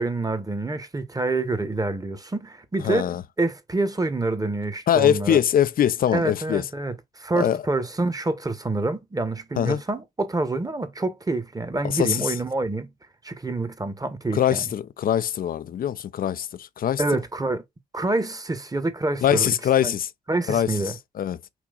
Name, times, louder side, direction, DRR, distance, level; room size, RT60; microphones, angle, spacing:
voice 1, 0.0-3.1 3.4-5.4 6.1-12.9 13.2-14.6 17.0-17.6 17.9-19.5 19.8-19.9 20.3-21.0, right 2 dB, 20° right, 1.2 m, -27 dB
voice 2, 2.8-3.2 4.9-6.7 7.3-7.6 9.6-9.8 11.8-12.3 14.3-17.0 19.2-20.1 20.5-21.4, left 10 dB, 45° left, 0.5 m, -23 dB
6.1 x 2.7 x 2.5 m
hypercardioid pair, 40°, 20 cm